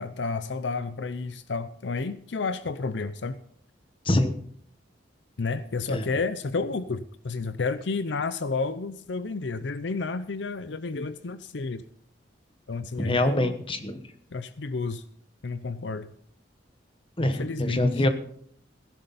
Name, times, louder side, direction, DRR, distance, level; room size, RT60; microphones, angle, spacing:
voice 1, 0.0-3.4 5.4-11.8 12.7-13.5 14.3-15.0 15.4-16.1 17.2-17.9, left 4 dB, 70° left, 12 dB, 0.6 m, -31 dB
voice 2, 4.0-4.4 5.9-6.1 13.0-14.0 17.2-18.1, left 1 dB, 30° left, 8 dB, 1.2 m, -25 dB
16.5 x 11.0 x 4.1 m, 0.62 s
head